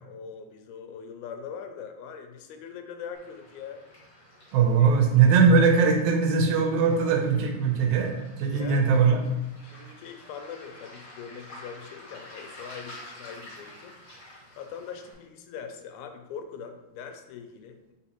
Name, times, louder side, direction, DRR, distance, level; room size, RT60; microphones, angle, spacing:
voice 1, 0.0-3.8 4.8-4.9 8.5-9.0 9.6-13.9 14.6-17.9, left 7 dB, 90° left, 6 dB, 2.0 m, -42 dB
Waves surf, 3.1-15.1, left 1 dB, 45° left, 1.9 m, -49 dB
voice 2, 4.5-9.2, right 5 dB, 85° right, 2 dB, 2.0 m, -21 dB
4.1 x 3.9 x 2.9 m, 0.97 s
omnidirectional pair, 3.4 m